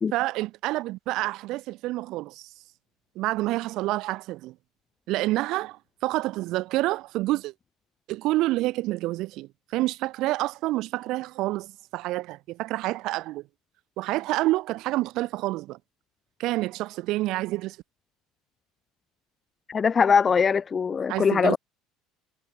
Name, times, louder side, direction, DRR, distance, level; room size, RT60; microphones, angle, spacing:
voice 1, 0.1-2.5 3.2-4.6 5.1-7.5 8.1-13.4 14.0-15.8 16.4-17.8 21.1-21.6, right 18 dB, 60° right, 0.6 m, -28 dB
voice 2, 19.7-21.6, left 6 dB, 30° left, 0.7 m, -21 dB
hypercardioid pair, 70°, 0 cm